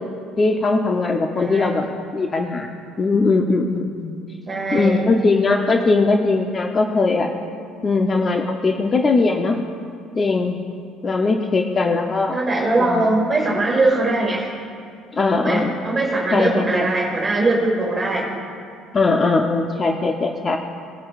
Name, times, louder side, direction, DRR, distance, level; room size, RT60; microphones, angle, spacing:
voice 1, 0.4-1.9 2.1-2.7 3.0-4.1 4.7-7.3 7.8-9.6 10.2-10.6 11.0-12.4 12.8-13.1 15.1-15.8 16.3-16.9 18.9-20.6, left 3 dB, 30° left, 3 dB, 0.7 m, -20 dB
voice 2, 1.3-1.9 4.5-5.0 12.3-14.5 15.3-18.3, right 2 dB, 25° right, -3 dB, 1.8 m, -21 dB
19.0 x 7.4 x 2.5 m, 2.3 s
cardioid pair, 105°, 0 cm